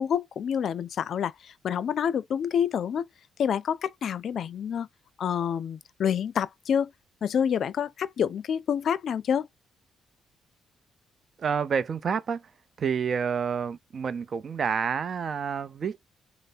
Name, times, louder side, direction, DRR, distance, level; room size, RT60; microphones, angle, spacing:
voice 1, 0.0-3.1 3.4-4.9 5.2-6.9 7.2-9.5, left 8 dB, 60° left, 0.4 m, -28 dB
voice 2, 11.4-12.5 12.8-16.0, right 6 dB, 50° right, 0.5 m, -29 dB
3.3 x 2.0 x 4.1 m
cardioid pair, 90°, 0 cm